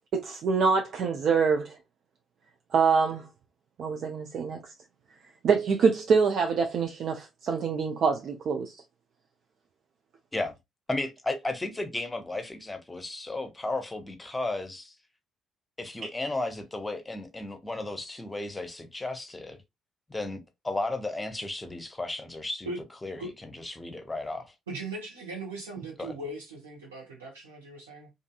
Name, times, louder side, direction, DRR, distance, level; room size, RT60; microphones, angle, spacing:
voice 1, 0.1-1.7 2.7-3.3 3.8-4.6 5.4-8.7 16.0-16.1, right 5 dB, 55° right, 0.4 m, -25 dB
voice 2, 10.9-14.9 15.8-19.6 20.1-22.7 23.0-24.5 26.0-26.1, left 2 dB, 15° left, 0.8 m, -34 dB
voice 3, 24.7-28.1, right 2 dB, 80° right, 0.9 m, -39 dB
2.6 x 2.6 x 2.4 m
figure-of-eight pair, 45°, 0 cm